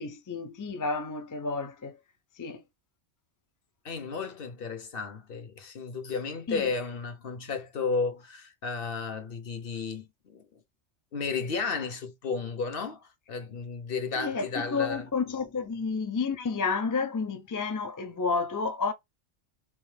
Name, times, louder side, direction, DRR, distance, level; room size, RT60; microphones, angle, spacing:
voice 1, 0.0-2.0 2.4-2.6 6.5-6.7 14.2-18.9, left 4 dB, 30° left, 0.3 m, -31 dB
voice 2, 3.8-10.4 11.1-15.0, left 4 dB, 55° left, 1.0 m, -33 dB
3.1 x 3.1 x 3.2 m
omnidirectional pair, 1.2 m